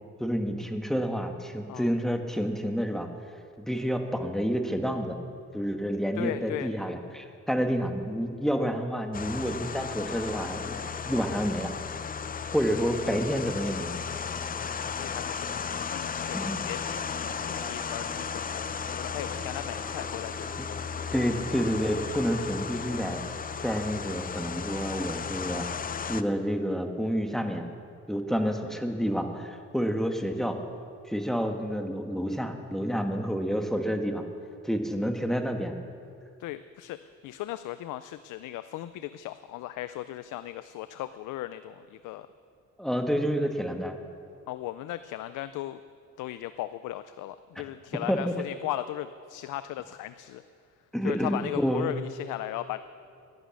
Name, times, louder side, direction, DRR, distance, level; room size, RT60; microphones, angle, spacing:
voice 1, 0.2-3.1 3.6-5.2 5.5-11.7 12.5-14.0 16.3-16.6 20.6-20.7 21.1-23.2 23.6-25.7 26.1-27.7 28.1-30.6 31.1-34.2 34.6-35.8 42.8-43.9 48.1-48.3 50.9-51.9, equal, ahead, 5 dB, 1.5 m, -29 dB
sound 1, 6.0-6.1 8.4-9.7 10.1-11.1 13.8-14.1 17.5-21.0 21.7-22.2, left 3 dB, 60° left, 3.3 m, -51 dB
voice 2, 6.1-6.7 14.8-21.0 33.0-33.2 36.4-42.3 44.5-45.8 46.2-50.4 51.0-52.8, left 14 dB, 85° left, 13 dB, 0.5 m, -37 dB
sound 2, 9.1-26.2, left 6 dB, 30° left, 0.5 m, -35 dB
sound 3, 16.9-23.4, right 4 dB, 50° right, 2.2 m, -51 dB
12.0 x 11.5 x 8.3 m, 2.4 s
cardioid pair, 90°, 30 cm